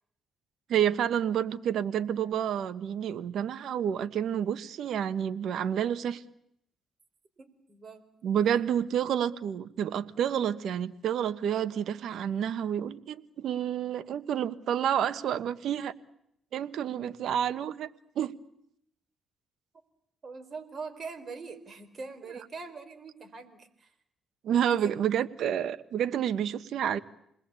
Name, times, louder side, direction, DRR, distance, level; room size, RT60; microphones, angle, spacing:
voice 1, 0.7-6.2 8.2-15.9 16.5-17.9 18.1-18.3 24.4-27.0, right 9 dB, 70° right, 13 dB, 1.4 m, -29 dB
voice 2, 7.4-8.0 20.2-23.9 24.6-24.9, right 4 dB, 40° right, 6 dB, 4.6 m, -43 dB
28.5 x 20.5 x 8.5 m, 0.75 s
cardioid pair, 90°, 0 cm